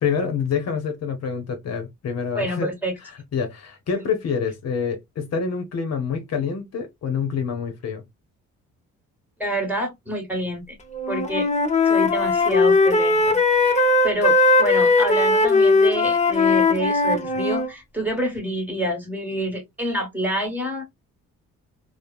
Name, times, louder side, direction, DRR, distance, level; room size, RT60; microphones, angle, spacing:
voice 1, 0.0-2.7 3.3-8.0, left 6 dB, 60° left, 0.8 m, -26 dB
voice 2, 2.3-2.9 9.4-10.8 11.1-11.5 11.8-20.8, right 1 dB, 5° right, 1.4 m, -27 dB
Wind instrument woodwind instrument, 10.9-17.7, left 3 dB, 25° left, 0.8 m, -18 dB
3.2 x 2.1 x 2.3 m
cardioid pair, 90°, 30 cm